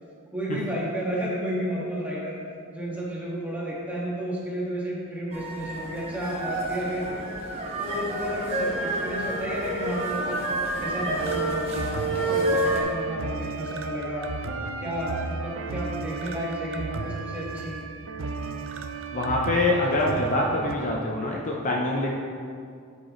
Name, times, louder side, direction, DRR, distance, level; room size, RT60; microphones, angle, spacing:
voice 1, 0.3-2.4 2.7-7.2 7.8-10.4 10.8-14.3 14.8-17.8, equal, 5° right, -7 dB, 1.9 m, -32 dB
sound 1, 5.3-12.8, right 1 dB, 30° right, 1.5 m, -29 dB
sound 2, 11.2-20.8, right 4 dB, 60° right, 0.5 m, -35 dB
voice 2, 19.1-22.2, left 1 dB, 35° left, -2 dB, 0.7 m, -25 dB
9.2 x 8.2 x 3.2 m, 2.3 s
head